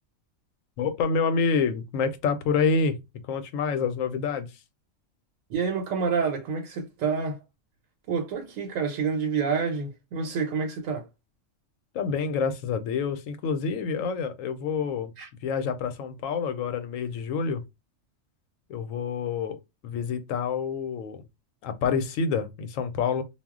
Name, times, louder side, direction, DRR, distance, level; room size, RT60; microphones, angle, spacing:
voice 1, 0.8-3.0 3.3-4.6 11.9-15.1 15.4-17.6 18.7-19.6 19.8-21.2 21.6-23.2, left 5 dB, 85° left, 1.0 m, -27 dB
voice 2, 5.5-7.4 8.1-11.1 15.2-15.3, right 5 dB, 90° right, 1.1 m, -28 dB
2.3 x 2.0 x 3.6 m
omnidirectional pair, 1.3 m